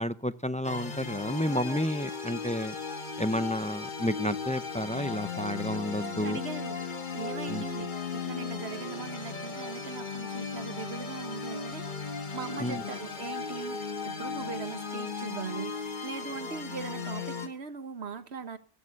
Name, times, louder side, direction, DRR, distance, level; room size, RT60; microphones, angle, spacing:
voice 1, 0.0-2.7 3.2-6.4 7.5-7.6 12.6-12.8, equal, 10° left, 0.4 m, -31 dB
sound 1, 0.6-17.5, left 5 dB, 45° left, 1.8 m, -36 dB
voice 2, 1.4-1.8 5.7-5.8 6.2-6.8 7.1-15.8 16.0-18.6, right 5 dB, 80° right, 1.5 m, -40 dB
15.0 x 12.5 x 6.3 m
omnidirectional pair, 1.1 m